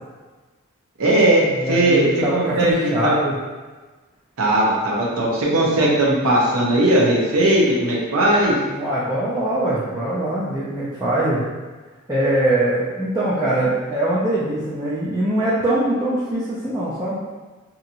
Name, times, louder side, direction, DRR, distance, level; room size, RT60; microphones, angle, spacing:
voice 1, 1.0-2.0 2.3-2.7 3.0-3.1 4.4-8.5, right 1 dB, 80° right, -4 dB, 0.7 m, -18 dB
voice 2, 1.5-3.3 8.7-11.4 12.1-17.2, right 1 dB, 15° right, -10 dB, 0.4 m, -22 dB
2.8 x 2.7 x 2.5 m, 1.3 s
head